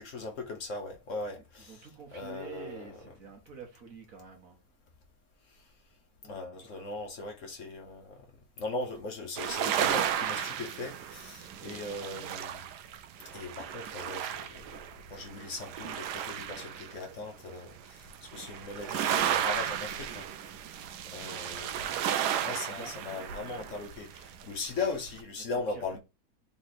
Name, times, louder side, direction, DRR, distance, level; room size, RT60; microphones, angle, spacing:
voice 1, 0.0-3.0 5.5-5.7 6.2-8.3 8.6-12.7 13.2-20.8 21.1-26.0, left 3 dB, 55° left, 1.3 m, -39 dB
voice 2, 1.6-4.6 6.2-6.7 22.4-23.0 25.4-26.0, right 5 dB, 60° right, 1.7 m, -49 dB
sound 1, 9.4-17.2 17.8-25.2, right 10 dB, 90° right, 1.2 m, -34 dB
4.1 x 3.2 x 4.1 m
omnidirectional pair, 1.7 m